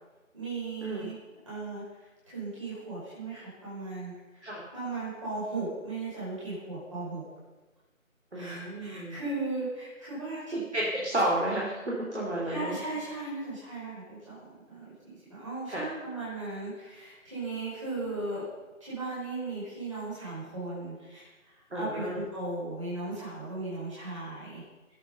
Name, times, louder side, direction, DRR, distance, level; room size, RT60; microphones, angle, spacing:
voice 1, 0.3-1.2 1.5-1.8 2.2-4.4 4.7-7.2 8.3-10.4 12.5-14.4 14.7-18.4 18.8-24.6, right 3 dB, 25° right, -10 dB, 5.4 m, -37 dB
voice 2, 8.3-9.2 10.5-12.8 15.7-15.8 21.7-22.2, right 1 dB, 50° right, -5 dB, 3.3 m, -31 dB
19.0 x 8.3 x 5.5 m, 1.2 s
figure-of-eight pair, 170°, 41 cm